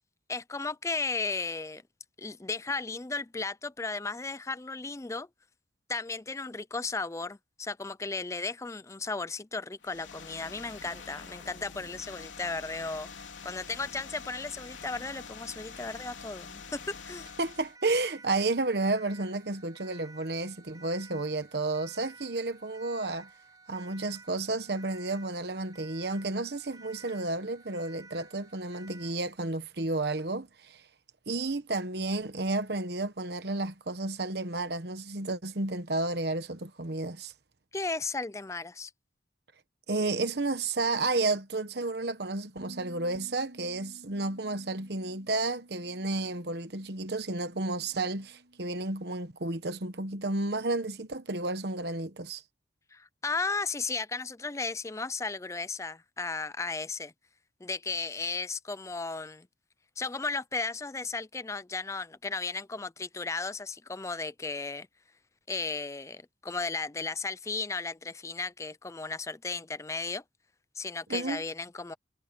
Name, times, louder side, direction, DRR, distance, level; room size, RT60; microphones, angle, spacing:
voice 1, 0.3-1.8 2.2-5.3 5.9-13.1 13.4-17.3 37.7-38.9 52.9-57.1 57.6-59.5 60.0-64.9 65.5-70.2 70.8-71.9, left 3 dB, 15° left, 0.4 m, -35 dB
sound 1, 9.8-17.8, left 5 dB, 90° left, 3.4 m, -46 dB
Siren, 17.3-29.2, right 3 dB, 20° right, 5.0 m, -54 dB
voice 2, 17.4-23.3 23.7-30.8 31.3-37.3 39.9-52.4 71.1-71.4, right 2 dB, 60° right, 1.1 m, -32 dB
Bass guitar, 42.6-48.8, equal, 75° right, 7.6 m, -55 dB
head